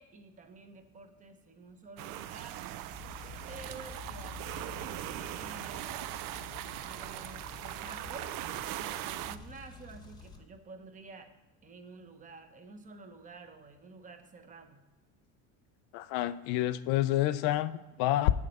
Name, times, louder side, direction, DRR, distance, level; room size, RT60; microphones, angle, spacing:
voice 1, 0.0-2.6 3.5-6.2 6.8-11.3 11.6-14.8, right 3 dB, 20° right, 7 dB, 0.9 m, -50 dB
sound 1, 2.0-9.4, right 13 dB, 60° right, 0.5 m, -40 dB
sound 2, 2.9-10.5, left 7 dB, 45° left, 0.8 m, -50 dB
sound 3, 3.0-10.4, right 1 dB, 10° left, 0.8 m, -57 dB
voice 2, 15.9-18.3, left 14 dB, 80° left, 12 dB, 0.5 m, -28 dB
8.7 x 7.3 x 5.3 m, 1.2 s
cardioid pair, 160°, 37 cm